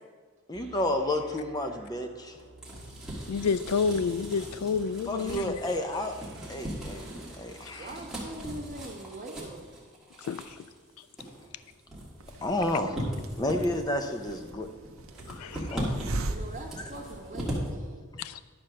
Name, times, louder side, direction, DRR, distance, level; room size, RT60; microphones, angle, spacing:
voice 1, 0.5-2.4 5.1-6.1 6.5-7.1 7.4-7.9 12.4-13.0 13.4-14.7 15.7-16.0, left 1 dB, 20° left, 5 dB, 0.6 m, -30 dB
sound 1, 0.5-8.1, right 1 dB, 55° right, 1.4 m, -53 dB
sound 2, 2.3-17.7, equal, 5° right, 1.8 m, -39 dB
voice 2, 3.3-5.6 10.3-10.4 15.3-15.8 18.2-18.4, left 5 dB, 85° left, 15 dB, 0.3 m, -29 dB
voice 3, 7.7-9.6 15.7-18.0, right 1 dB, 35° right, -1 dB, 1.3 m, -42 dB
Hiss, 12.2-17.7, right 2 dB, 75° right, 0.7 m, -40 dB
11.0 x 4.4 x 6.3 m, 1.4 s
head